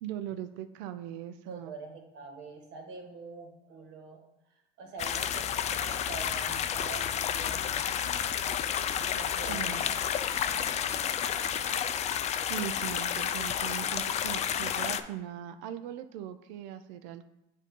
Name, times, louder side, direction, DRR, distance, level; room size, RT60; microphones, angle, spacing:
voice 1, 0.0-1.7 9.5-9.9 12.5-17.2, right 11 dB, 85° right, 10 dB, 0.4 m, -39 dB
voice 2, 1.4-4.2 4.8-7.7 9.0-10.0 10.4-11.4, right 4 dB, 60° right, 3 dB, 1.5 m, -45 dB
sound 1, 5.0-15.0, left 9 dB, 35° left, 0.4 m, -31 dB
7.4 x 2.7 x 5.2 m, 0.88 s
supercardioid pair, 115°, 21 cm